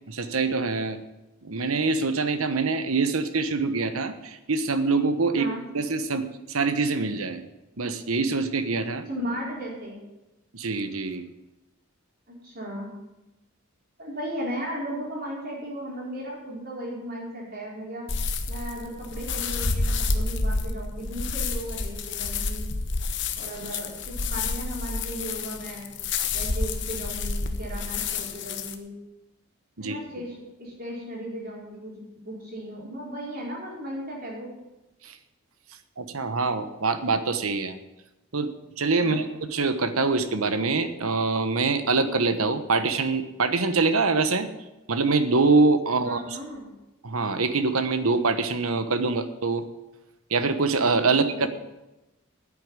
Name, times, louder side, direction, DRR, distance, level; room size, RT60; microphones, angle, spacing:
voice 1, 0.1-1.0 1.4-5.5 5.7-7.4 7.8-9.0 10.5-11.3 29.8-30.0 35.0-35.2 36.0-37.8 38.3-44.5 44.9-46.4 47.0-49.7 50.3-51.2, right 3 dB, 85° right, 10 dB, 1.2 m, -24 dB
voice 2, 5.3-5.6 9.1-10.0 12.3-12.9 14.0-18.1 18.5-22.7 23.4-25.9 26.3-28.9 29.8-31.9 32.2-34.5 39.0-39.3 46.0-46.7 51.1-51.5, equal, 45° right, -4 dB, 4.8 m, -36 dB
sound 1, 18.1-28.7, left 3 dB, 55° left, 1.1 m, -29 dB
10.0 x 8.6 x 9.7 m, 0.99 s
head